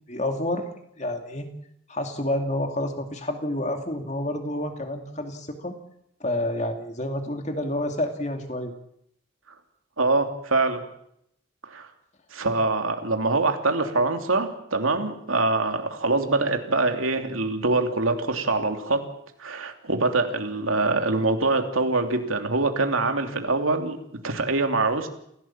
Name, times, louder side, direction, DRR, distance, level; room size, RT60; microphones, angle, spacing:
voice 1, 0.1-0.6 1.0-1.5 1.9-5.7 6.2-8.7, left 1 dB, 35° left, 5 dB, 2.5 m, -29 dB
voice 2, 10.0-10.8 11.7-11.9 12.3-19.0 19.4-24.0 24.2-25.1, right 3 dB, 90° right, 5 dB, 3.0 m, -24 dB
27.5 x 16.5 x 7.4 m, 0.74 s
head